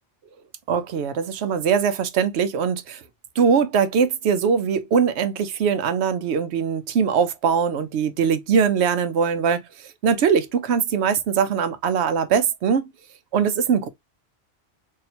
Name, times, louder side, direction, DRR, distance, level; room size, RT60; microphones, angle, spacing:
voice 1, 0.7-3.0 3.4-9.6 10.0-12.8 13.3-13.9, right 6 dB, 90° right, 0.9 m, -21 dB
4.2 x 2.8 x 2.7 m
omnidirectional pair, 1.1 m